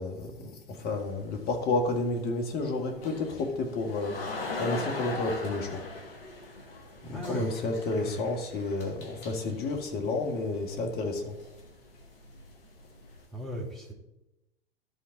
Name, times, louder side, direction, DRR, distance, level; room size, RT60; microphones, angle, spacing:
voice 1, 0.0-4.3 4.6-5.8 7.0-11.3, left 2 dB, 30° left, 3 dB, 1.8 m, -31 dB
sound 1, 0.8-13.2, left 3 dB, 65° left, 2.0 m, -41 dB
voice 2, 7.1-8.3 13.3-13.9, equal, ahead, -3 dB, 1.9 m, -36 dB
12.5 x 5.6 x 4.0 m, 0.92 s
figure-of-eight pair, 100°, 32 cm